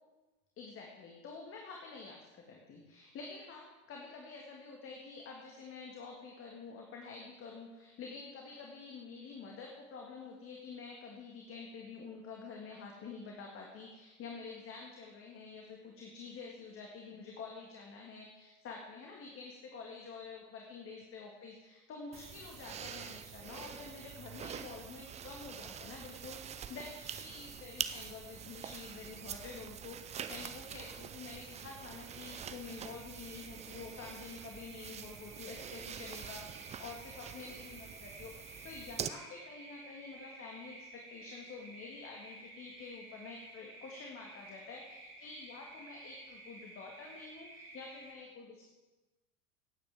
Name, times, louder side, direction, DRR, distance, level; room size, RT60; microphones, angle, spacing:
voice 1, 0.6-48.7, left 4 dB, 35° left, 0 dB, 1.9 m, -48 dB
sound 1, 22.1-39.1, right 8 dB, 15° right, 0.5 m, -45 dB
sound 2, 30.8-48.1, right 2 dB, 35° right, 3.3 m, -54 dB
17.5 x 8.8 x 3.6 m, 1.2 s
figure-of-eight pair, 75°, 40 cm